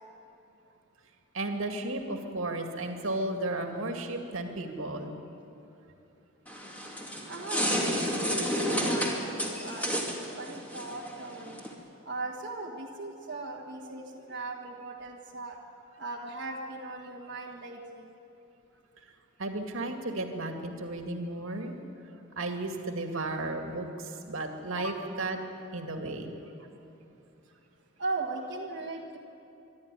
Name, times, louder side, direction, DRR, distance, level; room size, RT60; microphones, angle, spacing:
voice 1, 1.3-5.1 19.4-21.8 22.4-23.9 24.3-25.4 25.7-26.3, right 2 dB, 75° right, 3 dB, 2.3 m, -34 dB
sound 1, 6.5-11.7, equal, 10° left, 2.5 m, -31 dB
voice 2, 7.2-10.0 10.4-11.5 12.0-15.6 16.0-18.1 24.8-25.0 26.2-26.3 28.0-29.2, right 2 dB, 55° right, -3 dB, 1.6 m, -38 dB
24.5 x 12.5 x 10.0 m, 2.8 s
head